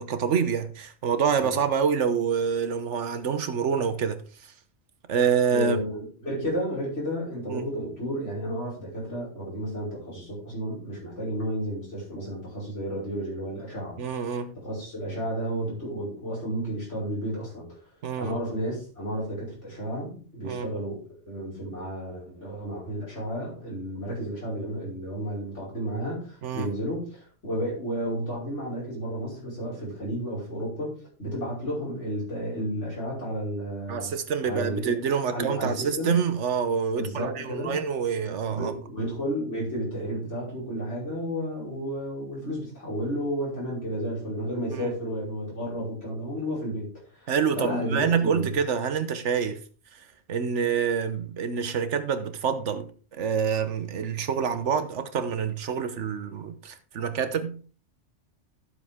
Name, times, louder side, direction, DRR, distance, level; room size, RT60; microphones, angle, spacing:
voice 1, 0.0-4.2 5.1-5.8 7.5-7.7 14.0-14.5 18.0-18.4 20.4-20.7 26.4-26.7 33.9-38.7 44.7-44.9 47.3-49.6 50.3-52.9 53.1-57.6, right 6 dB, 75° right, 1.3 m, -27 dB
voice 2, 5.5-14.0 14.6-17.7 18.2-21.0 21.3-34.1 34.4-35.0 35.3-36.2 36.9-37.8 38.2-47.3 47.5-48.5, equal, 80° left, 5.7 m, -32 dB
12.0 x 7.2 x 3.6 m
omnidirectional pair, 1.2 m